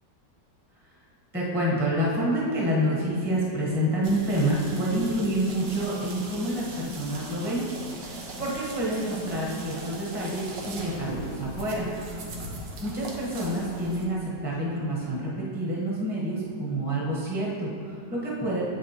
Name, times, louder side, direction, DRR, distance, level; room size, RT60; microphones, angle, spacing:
voice 1, 1.3-7.6 8.0-11.9 12.8-18.6, right 1 dB, 5° right, -5 dB, 0.9 m, -28 dB
sound 1, 4.0-14.0, right 2 dB, 85° right, 1.6 m, -39 dB
7.8 x 6.1 x 2.9 m, 2.6 s
omnidirectional pair, 1.9 m